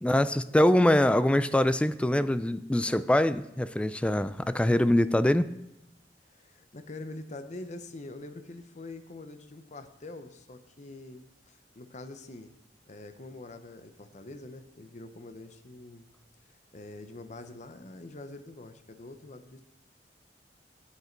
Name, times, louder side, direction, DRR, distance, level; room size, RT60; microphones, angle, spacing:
voice 1, 0.0-5.5, left 1 dB, 5° left, 14 dB, 0.3 m, -24 dB
voice 2, 6.3-12.5 12.9-16.0 16.5-19.6, left 2 dB, 45° left, 9 dB, 0.7 m, -45 dB
8.2 x 8.0 x 4.5 m, 0.90 s
head